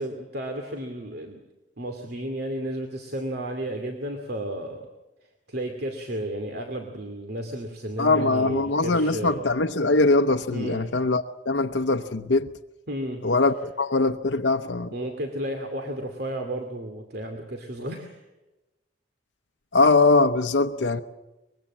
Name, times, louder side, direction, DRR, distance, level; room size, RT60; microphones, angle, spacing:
voice 1, 0.0-1.4 1.8-4.9 5.5-9.6 10.5-10.8 12.9-13.2 14.0-14.1 14.9-18.2, right 1 dB, 60° right, 2.5 m, -33 dB
voice 2, 8.0-12.5 13.2-14.9 19.7-21.0, left 3 dB, 80° left, 0.8 m, -22 dB
24.0 x 22.0 x 7.4 m
head